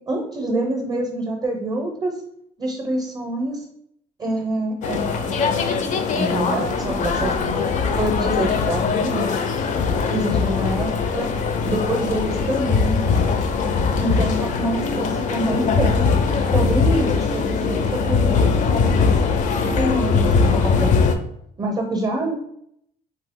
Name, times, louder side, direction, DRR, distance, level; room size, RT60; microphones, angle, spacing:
voice 1, 0.1-2.1 2.6-3.6 4.2-5.5 6.1-7.3 7.9-9.4 10.1-11.3 11.6-13.0 14.0-15.9 16.5-19.1 19.8-20.9 21.6-22.3, right 1 dB, 25° right, 0 dB, 0.5 m, -26 dB
sound 1, 4.8-21.2, left 5 dB, 45° left, 0.4 m, -21 dB
2.8 x 2.3 x 3.5 m, 0.73 s
cardioid pair, 110°, 17 cm